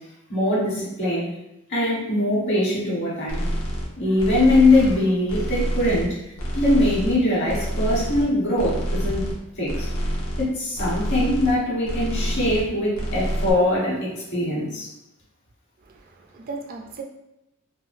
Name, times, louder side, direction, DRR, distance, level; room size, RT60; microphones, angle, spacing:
voice 1, 0.3-1.3 1.7-3.5 4.0-6.2 6.5-9.8 10.4-14.9, left 1 dB, 55° left, -6 dB, 1.4 m, -22 dB
sound 1, 3.3-3.9 4.2-5.0 5.3-6.1 6.4-7.2 7.5-8.3 8.6-9.4 9.6-10.4 10.7-11.6 11.8-12.7 12.9-13.5, equal, 70° left, 0.8 m, -27 dB
voice 2, 15.8-17.0, right 3 dB, 40° right, 2 dB, 0.3 m, -37 dB
3.6 x 2.2 x 2.6 m, 0.88 s
head